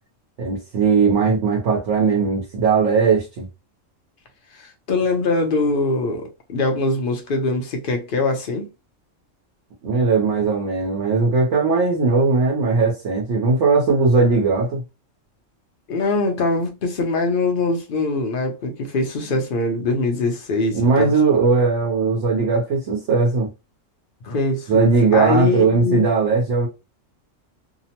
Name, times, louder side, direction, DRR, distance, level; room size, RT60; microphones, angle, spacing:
voice 1, 0.4-3.5 9.8-14.8 20.7-23.5 24.7-26.7, right 4 dB, 65° right, 1.1 m, -18 dB
voice 2, 4.6-8.7 15.9-21.1 24.2-26.1, left 3 dB, 50° left, 0.7 m, -22 dB
2.8 x 2.0 x 2.8 m
omnidirectional pair, 1.4 m